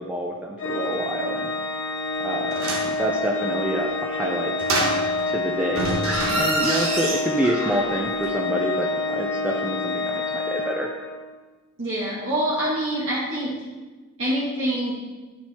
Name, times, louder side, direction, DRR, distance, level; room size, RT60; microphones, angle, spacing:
voice 1, 0.0-1.5 2.2-4.5 5.3-10.9, equal, 5° right, -1 dB, 0.5 m, -27 dB
Organ, 0.6-11.4, left 3 dB, 80° left, 0.8 m, -28 dB
sound 1, 2.5-3.0 4.6-5.4 5.7-8.0 8.2-8.3, right 2 dB, 90° right, 1.4 m, -26 dB
voice 2, 11.8-13.5 14.2-14.9, right 1 dB, 60° right, -9 dB, 1.7 m, -25 dB
11.0 x 4.5 x 4.3 m, 1.2 s
head